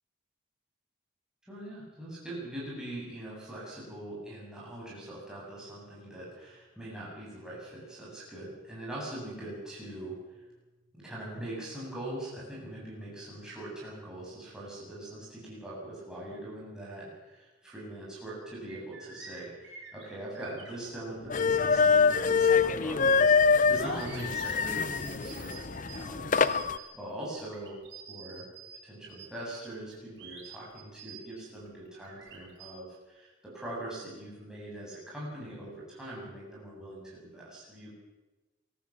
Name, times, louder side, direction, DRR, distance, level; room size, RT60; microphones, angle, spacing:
voice 1, 1.4-10.4 10.9-27.8 28.1-28.5 28.8-37.9, right 1 dB, 5° right, -6 dB, 7.6 m, -42 dB
sound 1, 18.0-18.1 18.4-23.0 23.2-28.8 29.1-32.7, right 6 dB, 60° right, 5.1 m, -50 dB
sound 2, 21.3-26.8, left 5 dB, 40° left, 0.7 m, -25 dB
23.5 x 14.5 x 7.5 m, 1.1 s
head